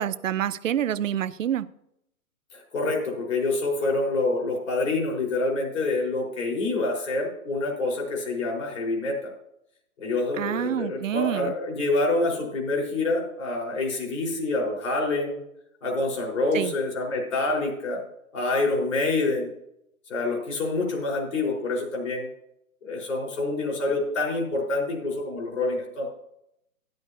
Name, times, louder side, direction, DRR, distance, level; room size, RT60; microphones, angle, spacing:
voice 1, 0.0-1.7 10.4-11.5 16.5-16.7, right 10 dB, 60° right, 16 dB, 0.6 m, -27 dB
voice 2, 2.5-9.3 10.0-15.4 15.8-18.0 18.3-19.5 20.1-22.2 22.8-26.1, left 2 dB, 60° left, 0 dB, 4.6 m, -27 dB
13.0 x 10.5 x 2.8 m, 0.79 s
figure-of-eight pair, 130°, 43 cm